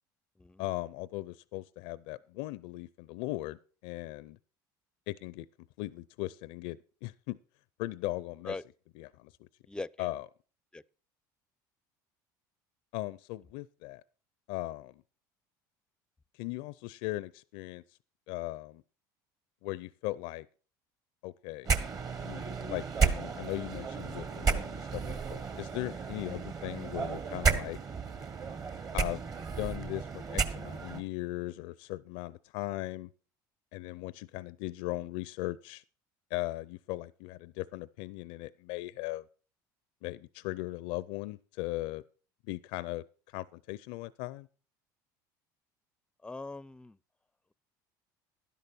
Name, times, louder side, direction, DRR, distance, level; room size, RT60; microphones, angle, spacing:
voice 1, 0.6-4.4 5.1-5.5 5.8-7.4 7.8-8.6 9.0-9.5 10.0-10.3 12.9-14.0 14.5-15.0 16.3-17.8 18.3-18.8 19.6-20.5 21.2-21.7 22.2-27.8 28.9-29.2 29.6-33.1 33.7-35.8 36.3-39.3 40.0-42.0 42.5-44.5, left 18 dB, 75° left, 0.4 m, -38 dB
voice 2, 9.7-10.1 10.7-10.8 46.2-47.0, left 3 dB, 10° left, 0.5 m, -40 dB
sound 1, 21.6-31.0, right 5 dB, 40° right, 1.4 m, -33 dB
12.0 x 11.0 x 4.2 m
supercardioid pair, 90°, 10 cm